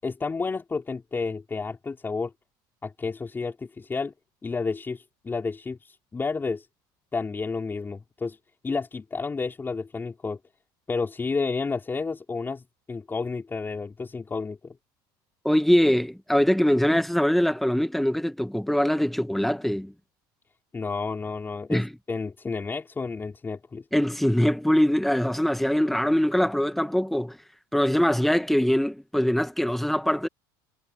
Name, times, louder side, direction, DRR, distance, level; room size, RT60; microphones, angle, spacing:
voice 1, 0.0-2.3 2.8-4.1 4.4-6.7 7.1-8.4 8.6-10.4 10.9-12.6 12.9-14.7 20.7-21.8 22.1-23.8, left 4 dB, 20° left, 5.2 m, -31 dB
voice 2, 15.4-19.9 21.7-21.9 23.9-27.4 27.7-30.3, equal, ahead, 1.7 m, -23 dB
supercardioid pair, 110°, 11 cm